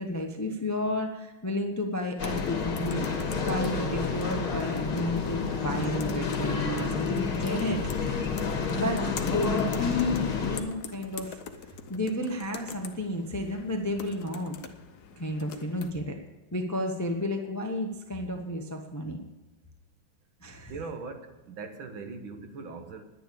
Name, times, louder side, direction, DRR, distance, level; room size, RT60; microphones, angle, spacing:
voice 1, 0.0-7.8 8.7-11.4 11.9-14.6 15.2-16.2 16.5-19.2 20.4-20.7, left 1 dB, 15° left, 3 dB, 0.5 m, -32 dB
sound 1, 2.2-10.6, left 5 dB, 85° left, 2.5 m, -30 dB
sound 2, 2.2-15.9, left 6 dB, 60° left, 1.3 m, -45 dB
voice 2, 20.7-23.0, right 4 dB, 70° right, 6 dB, 1.9 m, -40 dB
10.5 x 10.5 x 6.8 m, 1.1 s
omnidirectional pair, 2.3 m